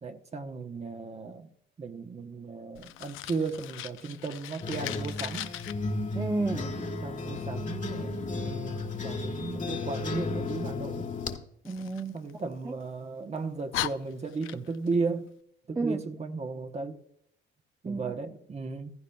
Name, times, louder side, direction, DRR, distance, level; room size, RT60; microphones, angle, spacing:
voice 1, 0.0-1.5 1.8-5.5 6.5-6.7 7.0-11.1 12.1-15.3 15.7-17.0 17.8-18.9, right 4 dB, 35° right, 1.0 m, -35 dB
Fire, 2.7-5.7 11.6-12.9 13.4-13.5 13.7-14.9, left 14 dB, 85° left, 0.5 m, -38 dB
sound 1, 4.6-11.4, left 3 dB, 40° left, 1.4 m, -34 dB
voice 2, 6.1-7.1 11.6-12.3 12.6-12.7 15.8-16.1 17.8-18.1, right 3 dB, 15° right, 0.6 m, -33 dB
15.0 x 15.0 x 2.3 m
cardioid pair, 90°, 20 cm